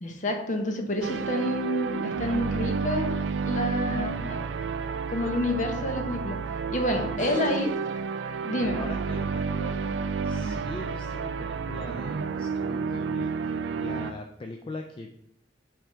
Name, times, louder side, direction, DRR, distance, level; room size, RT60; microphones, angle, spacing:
voice 1, 0.0-3.1 3.4-4.4 5.1-6.4 6.7-7.7 8.4-8.8, left 1 dB, 45° left, 4 dB, 0.9 m, -28 dB
sound 1, 1.0-14.1, right 5 dB, 75° right, 0.3 m, -30 dB
voice 2, 6.9-7.5 8.7-13.5 13.8-15.1, left 2 dB, 30° left, 4 dB, 0.3 m, -41 dB
6.1 x 3.6 x 4.5 m, 0.80 s
head